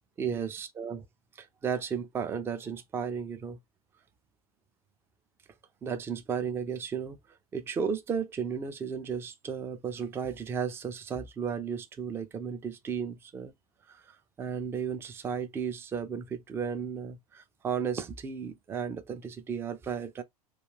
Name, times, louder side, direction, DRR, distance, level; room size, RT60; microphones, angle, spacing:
voice 1, 0.2-1.0 1.4-3.6 5.8-7.2 7.5-13.5 13.9-20.2, right 7 dB, 10° right, 0.3 m, -34 dB
2.3 x 2.2 x 3.1 m
figure-of-eight pair, 90°, 19 cm